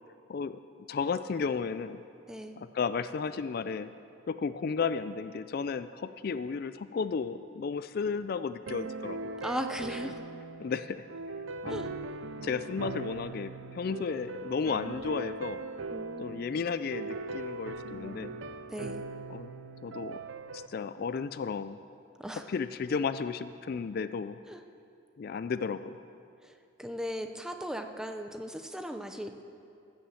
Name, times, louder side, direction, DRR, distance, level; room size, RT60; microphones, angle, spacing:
voice 1, 0.3-0.6 0.9-2.0 2.6-3.9 4.3-9.4 10.0-10.1 10.6-11.0 11.6-11.9 12.3-15.6 16.2-18.4 19.3-19.5 19.8-20.2 20.5-21.8 22.3-24.4 25.2-26.0, left 5 dB, 50° left, 13 dB, 0.3 m, -33 dB
sound 1, 8.7-20.7, right 3 dB, 75° right, 0.5 m, -40 dB
voice 2, 9.4-10.3 11.7-11.9 15.9-16.5 18.7-19.0 22.2-22.4 24.5-24.6 26.4-29.4, equal, 5° right, 6 dB, 0.6 m, -38 dB
15.0 x 7.1 x 7.6 m, 2.6 s
head